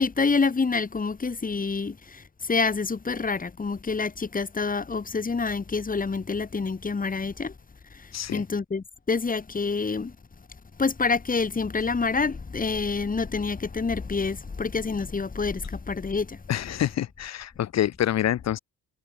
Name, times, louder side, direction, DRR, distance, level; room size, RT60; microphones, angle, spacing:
voice 1, 0.0-7.5 8.3-10.1 10.8-16.4, left 4 dB, 30° left, 3.2 m, -27 dB
voice 2, 8.1-8.5 16.5-18.6, left 11 dB, 60° left, 1.0 m, -27 dB
cardioid pair, 90°, 30 cm